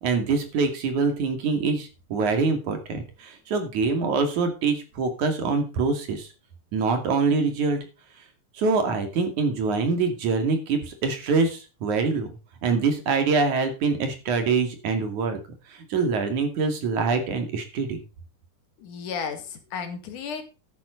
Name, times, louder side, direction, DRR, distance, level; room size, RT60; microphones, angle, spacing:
voice 1, 0.0-6.3 6.7-7.8 8.6-12.4 12.6-15.4 15.7-18.0, right 4 dB, 70° right, 6 dB, 3.8 m, -24 dB
voice 2, 18.8-20.5, left 6 dB, 75° left, 7 dB, 3.4 m, -33 dB
12.5 x 9.8 x 4.0 m, 0.30 s
omnidirectional pair, 3.6 m